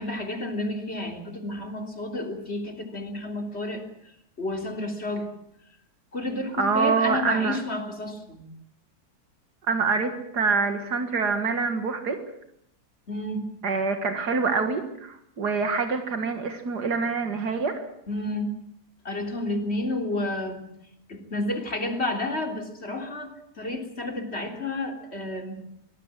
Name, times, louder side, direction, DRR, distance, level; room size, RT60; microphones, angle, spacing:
voice 1, 0.0-5.3 6.1-8.5 13.1-13.5 18.1-18.5 19.0-20.7 21.1-25.7, left 1 dB, 40° left, 3 dB, 3.6 m, -31 dB
voice 2, 6.6-7.6 9.7-12.2 13.6-17.8, right 4 dB, 90° right, 6 dB, 2.4 m, -25 dB
24.0 x 18.5 x 7.6 m, 0.73 s
omnidirectional pair, 1.7 m